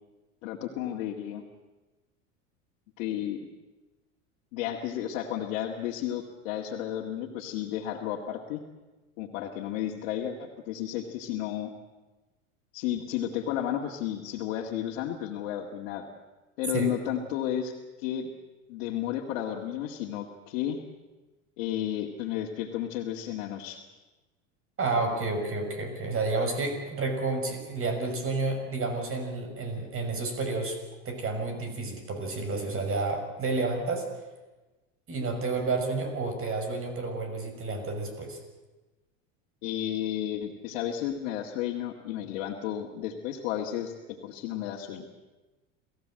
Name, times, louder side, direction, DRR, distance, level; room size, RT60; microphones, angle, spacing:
voice 1, 0.4-1.4 3.0-3.5 4.5-8.6 9.2-11.7 12.7-16.1 16.6-18.3 18.7-20.8 21.6-23.8 39.6-43.9 44.2-45.1, left 11 dB, 70° left, -1 dB, 2.2 m, -32 dB
voice 2, 24.8-30.8 31.0-34.1 35.1-38.4, right 3 dB, 35° right, 6 dB, 6.2 m, -30 dB
27.5 x 15.0 x 7.7 m, 1.1 s
supercardioid pair, 100°, 39 cm